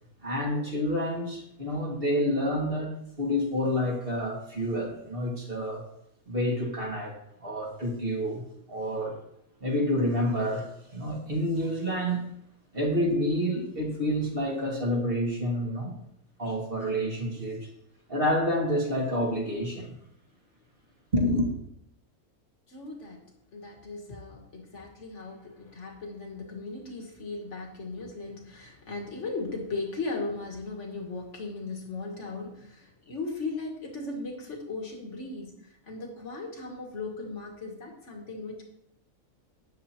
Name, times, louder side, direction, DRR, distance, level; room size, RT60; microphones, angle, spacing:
voice 1, 0.2-5.8 6.3-7.2 7.4-8.4 8.7-9.2 9.6-12.2 12.7-16.0 16.4-17.7 18.1-19.9 21.1-21.5, equal, 40° right, -2 dB, 2.3 m, -28 dB
voice 2, 22.7-23.2 23.5-38.7, left 3 dB, 50° left, 1 dB, 2.2 m, -37 dB
12.5 x 9.1 x 3.0 m, 0.75 s
omnidirectional pair, 1.6 m